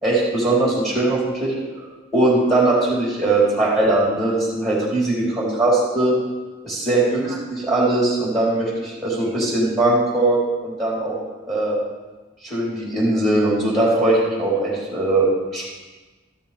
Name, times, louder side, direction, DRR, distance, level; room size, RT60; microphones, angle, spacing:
voice 1, 0.0-1.9 2.1-6.1 6.6-11.2 11.5-11.8 12.4-15.3 15.5-15.6, right 2 dB, ahead, -7 dB, 4.0 m, -20 dB
14.0 x 13.0 x 3.5 m, 1.2 s
head